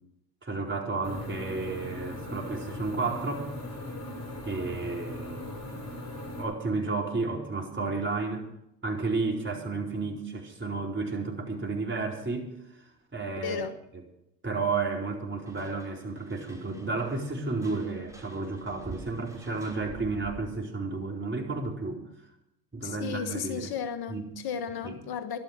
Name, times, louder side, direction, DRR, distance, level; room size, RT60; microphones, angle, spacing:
voice 1, 0.4-3.5 4.4-5.4 6.4-8.5 8.8-12.5 12.8-13.6 14.4-22.0 22.7-23.7 24.1-24.3 24.8-25.0, right 3 dB, 25° right, 0 dB, 4.5 m, -32 dB
sound 1, 1.0-6.4, left 1 dB, 35° left, 6.2 m, -39 dB
voice 2, 13.4-13.7 22.8-25.4, left 7 dB, 55° left, 10 dB, 1.4 m, -34 dB
sound 2, 15.5-20.7, right 2 dB, 5° right, 5.4 m, -49 dB
13.5 x 12.0 x 6.6 m, 0.82 s
hypercardioid pair, 65°, 45 cm